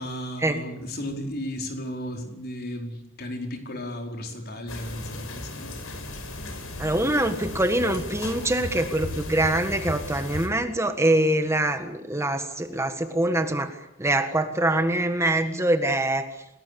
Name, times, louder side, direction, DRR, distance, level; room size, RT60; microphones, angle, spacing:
voice 1, 0.0-5.8, equal, 50° left, 3 dB, 4.9 m, -34 dB
sound 1, 4.7-10.5, left 1 dB, 90° left, 5.4 m, -35 dB
voice 2, 6.8-16.3, right 1 dB, 15° right, 7 dB, 1.7 m, -24 dB
29.0 x 19.5 x 8.5 m, 0.85 s
head